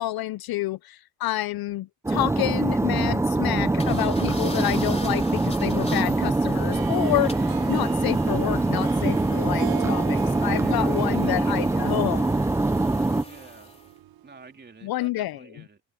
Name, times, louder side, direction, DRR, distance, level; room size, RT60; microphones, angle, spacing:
voice 1, 0.0-12.3 14.8-15.4, left 16 dB, 60° left, 0.5 m, -29 dB
sound 1, 2.0-13.2, right 2 dB, 5° right, 0.4 m, -24 dB
sound 2, 3.8-13.9, left 2 dB, 15° left, 3.9 m, -43 dB
Harp, 6.7-14.4, right 12 dB, 55° right, 0.8 m, -40 dB
voice 2, 10.3-11.5 13.2-13.8 14.2-15.8, right 4 dB, 25° right, 2.8 m, -48 dB
open air
cardioid pair, 130°, 44 cm